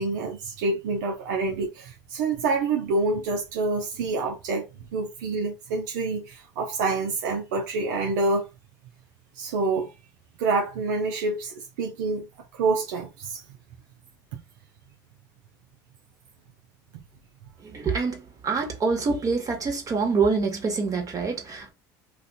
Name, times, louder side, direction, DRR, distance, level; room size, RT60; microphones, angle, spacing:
voice 1, 0.0-4.7 4.9-8.5 9.4-9.9 10.4-12.3 12.5-13.4 14.3-14.4, right 3 dB, 90° right, 0.7 m, -27 dB
voice 2, 17.6-21.7, right 4 dB, 35° right, 1.5 m, -26 dB
2.6 x 2.4 x 4.0 m
supercardioid pair, 90°, 10 cm